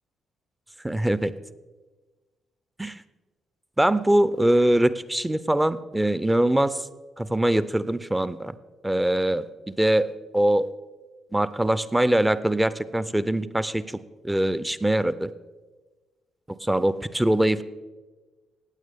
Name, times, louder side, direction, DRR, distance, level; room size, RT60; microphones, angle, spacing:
voice 1, 0.8-1.3 2.8-3.0 3.8-6.8 7.2-8.5 8.8-9.5 9.8-10.7 11.3-13.8 14.2-15.3 16.7-17.6, right 1 dB, 10° right, 15 dB, 0.6 m, -22 dB
15.5 x 8.7 x 3.6 m, 1.3 s
hypercardioid pair, 40°, 0 cm